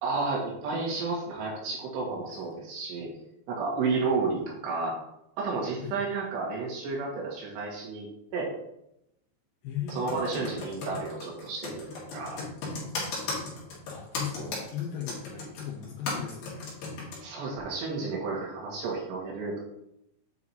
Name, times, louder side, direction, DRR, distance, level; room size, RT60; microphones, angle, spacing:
voice 1, 0.0-3.1 3.5-5.0 5.4-8.1 8.3-8.5 9.9-11.8 12.1-12.4 14.4-14.5 17.2-19.7, right 4 dB, 80° right, -3 dB, 3.7 m, -31 dB
voice 2, 9.6-10.6 13.9-16.7, left 9 dB, 90° left, 0 dB, 2.0 m, -37 dB
Computer keyboard, 9.9-17.2, left 3 dB, 65° left, 3.3 m, -35 dB
8.4 x 4.6 x 2.8 m, 0.81 s
omnidirectional pair, 4.9 m